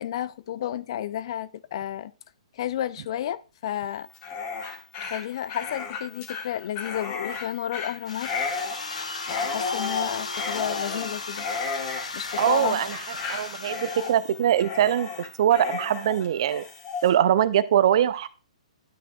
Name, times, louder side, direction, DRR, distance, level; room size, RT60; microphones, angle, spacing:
voice 1, 0.0-2.1 2.5-4.1 5.0-8.3 9.3-11.5 12.1-12.8, left 11 dB, 50° left, 0.4 m, -31 dB
Dog, 4.1-17.1, left 5 dB, 35° left, 2.0 m, -33 dB
sound 1, 8.1-14.1, left 3 dB, 75° left, 1.2 m, -35 dB
voice 2, 12.4-13.0 13.3-15.1 15.4-16.6 17.0-18.3, right 10 dB, 50° right, 0.5 m, -22 dB
12.5 x 5.8 x 2.4 m
figure-of-eight pair, 125°, 4 cm